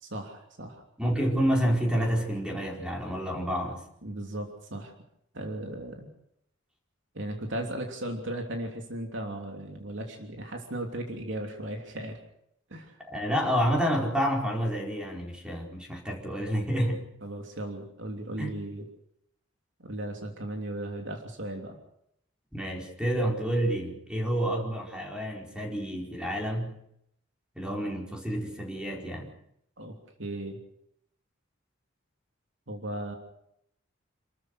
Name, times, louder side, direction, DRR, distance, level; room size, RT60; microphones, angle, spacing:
voice 1, 0.0-0.8 4.0-4.9 5.3-6.1 7.1-12.2 12.7-13.0 17.2-18.9 19.8-21.8 29.8-30.6 32.7-33.2, right 1 dB, 70° right, 2 dB, 3.1 m, -36 dB
voice 2, 1.0-3.8 13.0-17.0 18.4-18.5 22.5-26.8 27.5-29.3, equal, 5° right, -1 dB, 4.7 m, -29 dB
28.5 x 14.0 x 6.6 m, 0.75 s
head